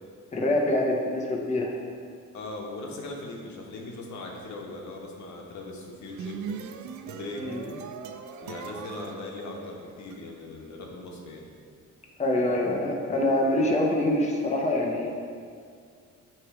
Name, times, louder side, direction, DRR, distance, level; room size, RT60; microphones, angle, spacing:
voice 1, 0.3-1.7 7.4-7.6 12.2-15.1, left 1 dB, 25° left, -1 dB, 0.9 m, -25 dB
voice 2, 2.3-6.4 7.1-7.4 8.4-11.5, left 2 dB, 70° left, -1 dB, 1.2 m, -39 dB
sound 1, 5.9-10.2, right 6 dB, 70° right, 0.5 m, -40 dB
8.4 x 3.2 x 4.8 m, 2.2 s
cardioid pair, 90°, 30 cm